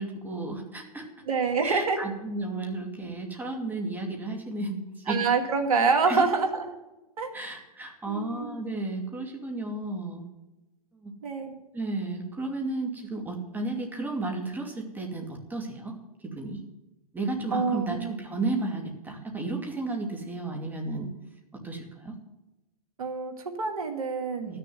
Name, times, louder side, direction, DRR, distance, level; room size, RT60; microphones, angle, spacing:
voice 1, 0.0-1.1 1.6-5.2 6.1-6.2 7.3-10.2 10.9-11.1 11.7-15.9 16.3-16.6 17.1-21.1 21.6-22.1 24.5-24.6, right 2 dB, 10° right, 2 dB, 2.6 m, -33 dB
voice 2, 1.2-2.0 5.1-6.7 7.2-7.3 8.1-8.6 11.2-11.6 17.5-18.1 23.0-24.6, right 4 dB, 75° right, 4 dB, 2.5 m, -26 dB
13.5 x 6.8 x 9.3 m, 1.0 s
hypercardioid pair, 115°, 19 cm